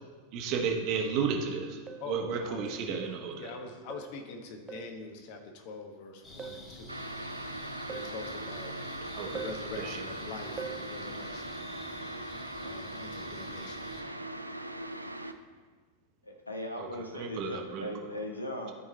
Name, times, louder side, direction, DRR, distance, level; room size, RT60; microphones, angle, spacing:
voice 1, 0.3-1.8 2.1-3.5 9.1-9.5 9.8-10.0 16.8-16.9 17.1-17.9, right 6 dB, 40° right, 3 dB, 1.0 m, -33 dB
sound 1, 1.9-2.2 2.6-2.9 3.9-4.2 4.7-5.0 6.4-6.7 7.9-8.2 9.3-9.7 10.6-10.9, right 7 dB, 20° right, 0.4 m, -42 dB
voice 2, 2.0-3.0 3.3-7.0 7.9-8.7 9.3-11.7 12.6-14.0, left 4 dB, 45° left, 4 dB, 1.1 m, -44 dB
sound 2, 6.2-14.0, left 1 dB, 20° left, 1.9 m, -48 dB
sound 3, 6.9-15.3, right 1 dB, 85° right, 0.4 m, -40 dB
voice 3, 16.2-18.7, left 1 dB, 85° left, 3 dB, 1.0 m, -38 dB
13.5 x 4.8 x 3.2 m, 1.4 s
figure-of-eight pair, 90°, 0 cm